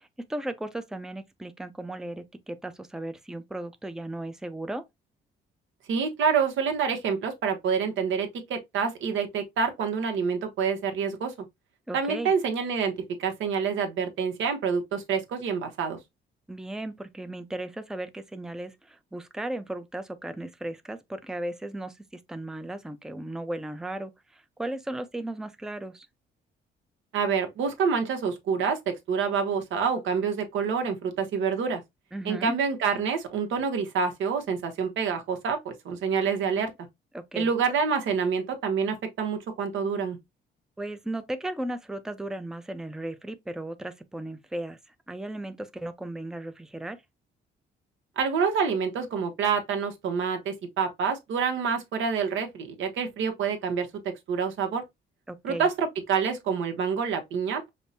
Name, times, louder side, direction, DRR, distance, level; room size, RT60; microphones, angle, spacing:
voice 1, 0.0-4.8 11.9-12.3 16.5-26.1 32.1-32.6 37.1-37.5 40.8-44.8 45.1-47.0 55.3-55.7, right 1 dB, 5° right, 0.5 m, -36 dB
voice 2, 5.9-11.3 11.9-12.9 13.2-16.0 27.1-31.8 32.2-36.7 37.3-40.2 48.2-53.9 54.3-54.8 55.4-57.7, right 6 dB, 75° right, 0.9 m, -27 dB
5.3 x 2.1 x 2.6 m
cardioid pair, 90°, 20 cm